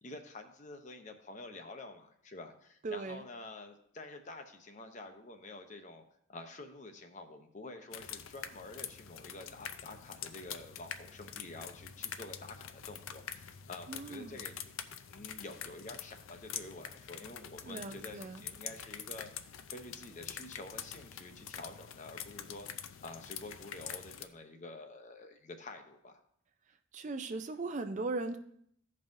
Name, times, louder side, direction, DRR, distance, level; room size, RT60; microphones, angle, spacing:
voice 1, 0.0-6.0 6.3-14.7 15.1-19.3 19.7-22.7 23.0-26.1, left 2 dB, 35° left, 6 dB, 0.7 m, -48 dB
voice 2, 2.8-3.2 13.9-14.4 17.7-18.4 26.9-28.4, right 3 dB, 35° right, 8 dB, 0.4 m, -38 dB
sound 1, 7.9-24.2, left 9 dB, 85° left, 0.5 m, -45 dB
15.5 x 5.4 x 2.6 m, 0.68 s
head